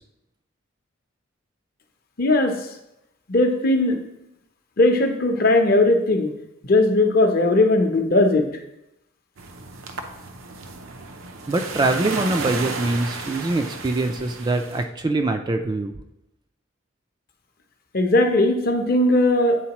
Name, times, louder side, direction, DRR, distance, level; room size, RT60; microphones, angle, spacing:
voice 1, 2.2-2.5 3.3-4.0 4.8-6.3 6.6-8.5 17.9-19.6, left 2 dB, 50° left, 4 dB, 0.7 m, -18 dB
sound 1, 9.4-14.8, right 3 dB, 85° right, 0.7 m, -33 dB
voice 2, 11.5-15.9, right 2 dB, 20° right, 6 dB, 0.3 m, -23 dB
8.4 x 3.9 x 2.9 m, 0.86 s
head